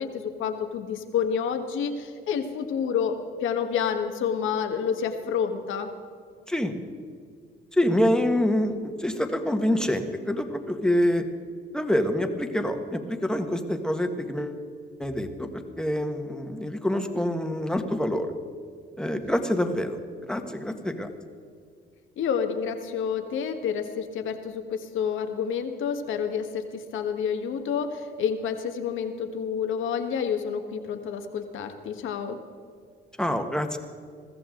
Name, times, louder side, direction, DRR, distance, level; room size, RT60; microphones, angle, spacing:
voice 1, 0.0-5.9 19.1-19.2 22.2-32.4, left 7 dB, 80° left, 6 dB, 1.6 m, -29 dB
voice 2, 7.7-11.2 11.7-14.6 15.0-18.3 19.0-20.0 20.3-21.1 33.2-33.8, left 1 dB, 5° left, 5 dB, 1.6 m, -26 dB
21.5 x 15.0 x 3.9 m, 2.1 s
cardioid pair, 90°, 20 cm